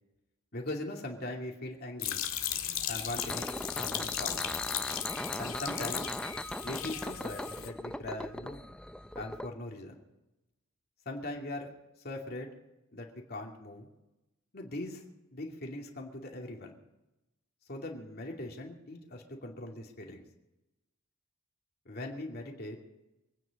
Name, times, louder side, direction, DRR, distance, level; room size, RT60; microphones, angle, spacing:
voice 1, 0.5-2.2 2.9-3.5 3.8-4.4 5.4-6.1 6.6-8.6 9.2-10.0 11.1-11.7 12.0-12.6 12.9-13.9 14.5-15.0 15.3-16.8 17.7-20.2 21.8-22.8, left 1 dB, 45° left, 0 dB, 2.6 m, -40 dB
sound 1, 2.0-7.7, left 10 dB, 80° left, 2.0 m, -36 dB
sound 2, 2.5-9.5, left 1 dB, 5° left, 0.4 m, -39 dB
25.0 x 9.6 x 5.3 m, 0.97 s
head